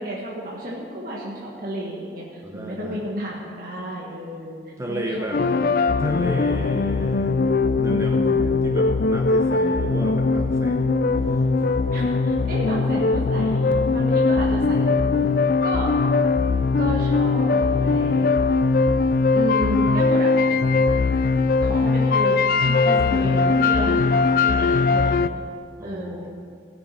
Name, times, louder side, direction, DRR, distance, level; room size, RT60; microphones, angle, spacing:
voice 1, 0.0-2.2 2.5-4.6 4.9-5.7 6.3-6.7 11.9-15.3 15.6-15.9 16.8-18.3 19.3-20.3 21.6-25.4 25.8-26.3, right 1 dB, 55° right, -4 dB, 1.6 m, -32 dB
voice 2, 2.4-3.1 4.8-5.4 6.0-10.9 11.2-11.7 20.5-20.9 23.1-23.5 25.8-26.3, right 1 dB, 15° right, 1 dB, 0.8 m, -34 dB
sound 1, 5.3-25.3, left 3 dB, 55° left, 0.4 m, -20 dB
16.0 x 6.8 x 5.7 m, 2.3 s
head